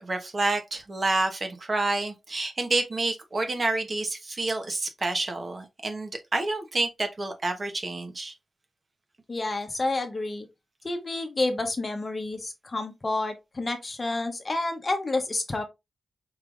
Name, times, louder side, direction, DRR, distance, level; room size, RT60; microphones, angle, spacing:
voice 1, 0.0-8.3, right 2 dB, 40° right, 1.1 m, -28 dB
voice 2, 9.3-10.5 10.8-15.6, left 2 dB, 35° left, 0.9 m, -29 dB
4.8 x 3.3 x 2.5 m
wide cardioid pair, 95°, 0 cm